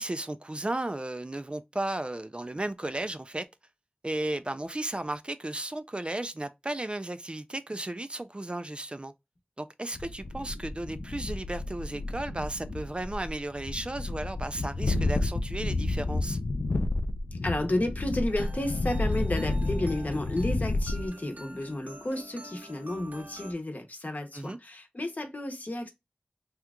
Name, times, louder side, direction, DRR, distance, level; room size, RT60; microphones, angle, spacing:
voice 1, 0.0-3.4 4.0-9.1 9.6-16.4 24.3-24.6, right 1 dB, 35° right, 0.3 m, -34 dB
sound 1, 10.0-21.1, left 2 dB, 90° left, 0.4 m, -31 dB
voice 2, 17.3-25.9, left 1 dB, 60° left, 0.8 m, -32 dB
sound 2, 18.3-23.5, right 1 dB, 60° right, 0.7 m, -46 dB
2.9 x 2.3 x 3.5 m
wide cardioid pair, 60°, 3 cm